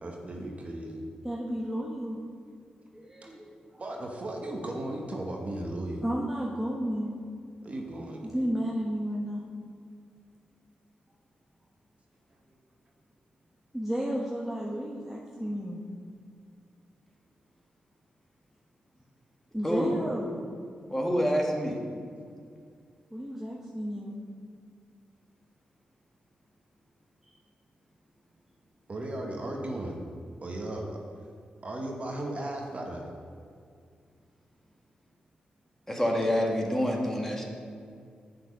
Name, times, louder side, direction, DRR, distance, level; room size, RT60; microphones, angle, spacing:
voice 1, 0.0-1.0 3.0-3.1 3.8-6.0 7.6-8.5 28.9-29.9 30.4-30.8 31.6-33.0, right 1 dB, 45° right, 0 dB, 1.3 m, -36 dB
voice 2, 1.2-2.2 2.9-3.8 6.0-7.1 8.2-9.4 13.7-15.8 19.5-20.4 23.1-24.2 27.2-27.3, equal, 5° right, -4 dB, 1.2 m, -32 dB
voice 3, 20.9-21.8 35.9-37.4, equal, 10° left, -1 dB, 1.9 m, -27 dB
7.5 x 6.2 x 5.4 m, 2.2 s
supercardioid pair, 40°, 3 cm